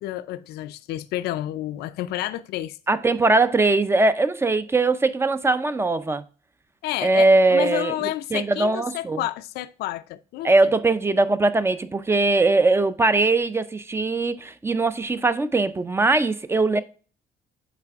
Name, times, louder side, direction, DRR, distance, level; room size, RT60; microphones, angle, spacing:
voice 1, 0.0-2.8 6.8-10.7, left 14 dB, 75° left, 0.4 m, -30 dB
voice 2, 2.9-6.2 7.0-7.9 8.3-9.2 10.4-16.8, right 3 dB, 15° right, 0.5 m, -20 dB
8.3 x 3.3 x 3.4 m
cardioid pair, 110°, 17 cm